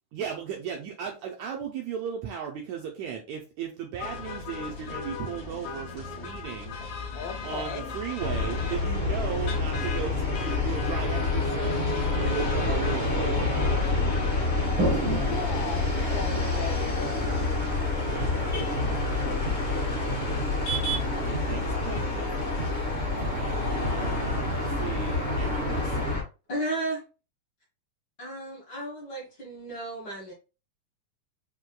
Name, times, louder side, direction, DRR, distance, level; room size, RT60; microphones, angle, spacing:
voice 1, 0.1-6.8 7.4-11.8 12.1-14.2 20.9-22.4 23.1-26.0, right 8 dB, 85° right, 1.6 m, -36 dB
sound 1, 4.0-22.8, left 2 dB, 65° left, 2.1 m, -39 dB
voice 2, 7.1-7.9 14.9-20.5, left 6 dB, 85° left, 2.3 m, -40 dB
sound 2, 8.2-26.2, left 3 dB, 35° left, 0.7 m, -27 dB
Toilet flush, 14.7-26.2, right 3 dB, 70° right, 1.3 m, -38 dB
voice 3, 26.5-27.0 28.2-30.3, right 1 dB, 50° left, 1.3 m, -33 dB
6.0 x 2.8 x 2.3 m
omnidirectional pair, 3.8 m